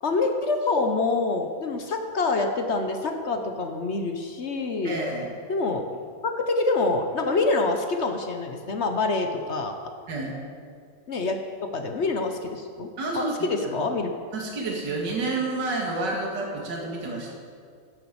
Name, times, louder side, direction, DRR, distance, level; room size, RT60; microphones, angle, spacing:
voice 1, 0.0-5.0 5.5-5.8 6.2-9.8 11.1-11.4 11.7-12.9 13.1-14.1, left 3 dB, 50° left, 5 dB, 0.9 m, -26 dB
voice 2, 4.8-5.3 10.1-10.4 13.0-13.3 13.6-13.8 14.3-17.3, right 2 dB, 60° right, -1 dB, 2.5 m, -29 dB
11.5 x 8.4 x 7.7 m, 2.1 s
omnidirectional pair, 2.1 m